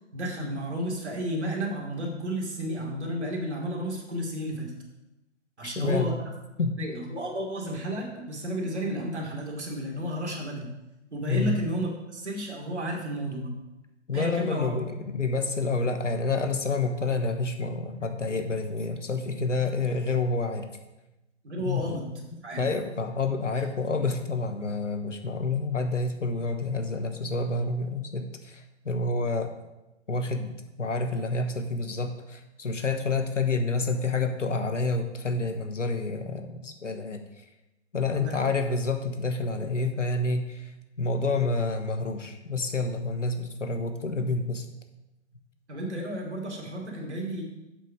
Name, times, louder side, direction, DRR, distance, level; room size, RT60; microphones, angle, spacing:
voice 1, 0.1-4.7 5.6-6.1 6.8-10.7 11.1-13.5 14.1-14.7 21.4-22.1 22.4-22.7 38.1-38.5 45.7-47.4, equal, 65° right, -1 dB, 2.9 m, -32 dB
voice 2, 5.6-6.2 6.6-6.8 11.3-11.6 14.1-20.7 21.6-22.0 22.6-29.5 30.1-37.2 37.9-40.7 41.0-44.7, left 3 dB, 75° left, 6 dB, 1.3 m, -28 dB
8.1 x 6.4 x 5.0 m, 0.98 s
figure-of-eight pair, 130°, 37 cm